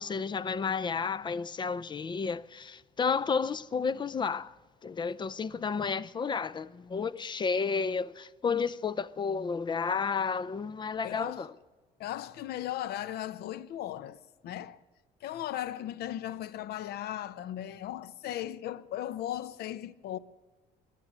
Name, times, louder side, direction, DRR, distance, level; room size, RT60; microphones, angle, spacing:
voice 1, 0.0-4.5 4.8-11.5, left 5 dB, 25° left, 0.4 m, -31 dB
voice 2, 11.0-11.5 12.0-14.8 15.2-20.2, left 12 dB, 70° left, 0.7 m, -37 dB
21.5 x 7.5 x 8.1 m
cardioid pair, 110°, 17 cm